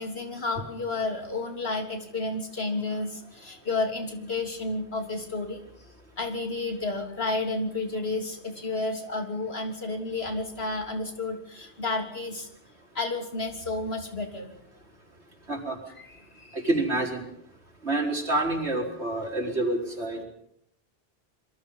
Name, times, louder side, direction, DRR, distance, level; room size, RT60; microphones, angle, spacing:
voice 1, 0.0-5.6 6.2-12.5 13.0-14.5 16.0-16.7, left 3 dB, 65° left, 4 dB, 3.5 m, -31 dB
voice 2, 16.5-17.3 17.8-20.2, right 2 dB, 80° right, 2 dB, 4.9 m, -27 dB
26.5 x 22.5 x 5.5 m, 0.72 s
omnidirectional pair, 1.1 m